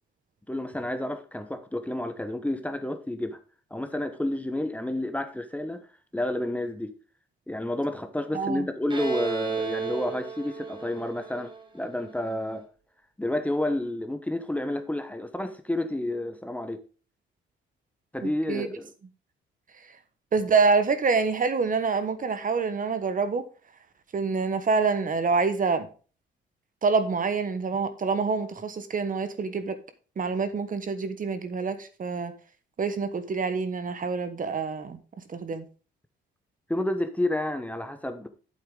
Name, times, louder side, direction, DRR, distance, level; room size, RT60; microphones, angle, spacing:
voice 1, 0.5-3.4 3.7-5.8 6.1-6.9 7.5-12.7 13.2-16.8 18.1-18.9 36.7-38.3, left 1 dB, 5° left, 1.0 m, -30 dB
voice 2, 8.3-8.7 18.2-18.7 20.3-23.4 24.1-25.9 26.8-29.8 30.2-32.3 32.8-35.0 35.3-35.6, right 4 dB, 45° right, 1.2 m, -26 dB
Bowed string instrument, 8.9-12.5, right 6 dB, 25° right, 1.9 m, -33 dB
8.6 x 7.9 x 3.8 m
cardioid pair, 90°, 20 cm